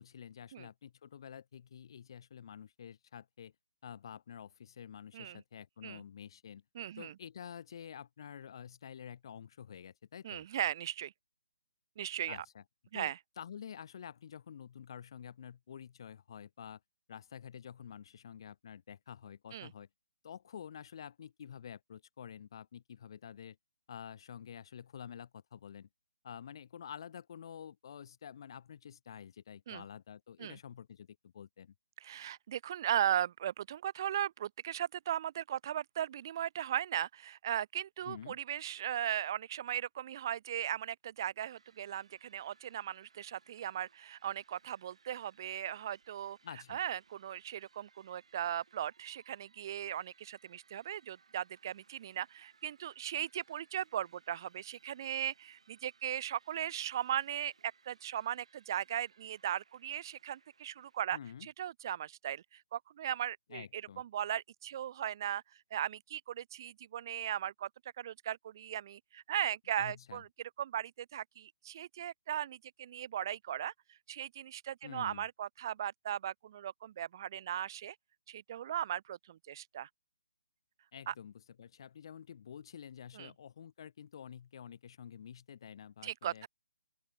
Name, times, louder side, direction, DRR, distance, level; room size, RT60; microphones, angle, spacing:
voice 1, 0.0-3.5 3.8-6.6 7.0-10.4 12.3-12.6 12.9-16.8 17.1-19.9 20.2-23.6 23.9-25.9 26.2-31.7 38.0-38.4 46.4-46.8 61.1-61.5 63.5-64.0 69.8-70.2 74.8-75.3 80.9-86.5, left 8 dB, 50° left, 0.8 m, -49 dB
voice 2, 6.8-7.1 10.2-11.1 12.0-12.4 12.9-13.2 19.5-19.7 29.7-29.8 30.4-30.6 32.0-46.4 46.7-65.4 65.7-67.7 68.0-70.3 70.6-73.7 74.1-78.0 78.3-79.9 81.1-81.2 83.2-83.3 86.0-86.5, right 10 dB, 40° right, 0.4 m, -37 dB
sound 1, 41.5-61.0, right 5 dB, 70° right, 4.2 m, -68 dB
open air
hypercardioid pair, 155°, 3 cm